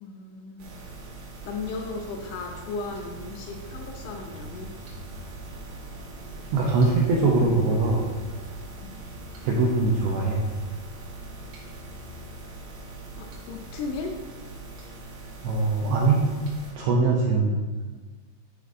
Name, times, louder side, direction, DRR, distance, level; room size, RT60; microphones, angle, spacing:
voice 1, 0.0-0.7 1.4-4.7 8.8-9.0 13.2-14.2, left 4 dB, 85° left, 2 dB, 2.6 m, -36 dB
sound 1, 0.6-16.7, right 2 dB, 65° right, 2.5 m, -41 dB
voice 2, 6.5-8.1 9.4-10.4 15.4-16.3 16.8-17.6, right 3 dB, 85° right, -2 dB, 2.3 m, -22 dB
10.5 x 5.0 x 2.5 m, 1.3 s
omnidirectional pair, 5.4 m